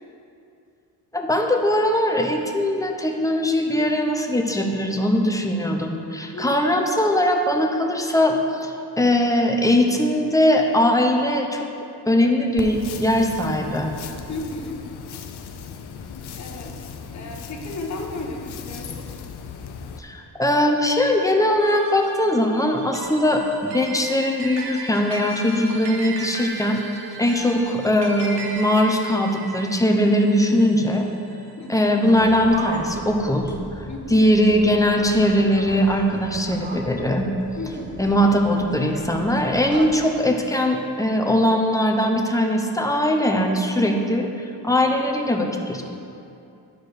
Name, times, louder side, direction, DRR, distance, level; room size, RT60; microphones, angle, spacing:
voice 1, 1.1-11.7 12.1-13.9 20.0-26.8 27.2-31.1 31.7-33.5 34.1-37.3 38.0-44.2 44.6-45.8, left 1 dB, 10° left, 2 dB, 0.6 m, -20 dB
sound 1, 12.6-20.0, left 6 dB, 80° left, 0.6 m, -37 dB
voice 2, 14.3-14.8 16.3-16.8 17.1-19.0 29.9-30.0 31.6-31.9 33.9-34.3 37.6-38.0 43.8-44.2, left 2 dB, 45° left, 1 dB, 1.0 m, -34 dB
sound 2, 21.6-32.2, right 3 dB, 80° right, 1.0 m, -36 dB
sound 3, 32.0-40.0, right 2 dB, 30° right, 0.7 m, -36 dB
11.0 x 4.4 x 4.8 m, 2.6 s
wide cardioid pair, 145°, 39 cm